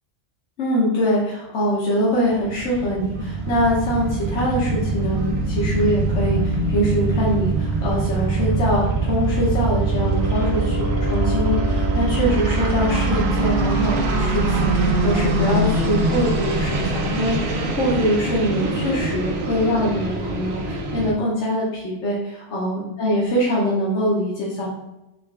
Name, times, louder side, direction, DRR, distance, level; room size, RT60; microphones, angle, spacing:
voice 1, 0.6-24.7, equal, 75° left, -6 dB, 1.3 m, -23 dB
sound 1, 2.3-21.1, right 2 dB, 65° right, 0.9 m, -23 dB
4.0 x 3.4 x 3.3 m, 0.95 s
omnidirectional pair, 1.2 m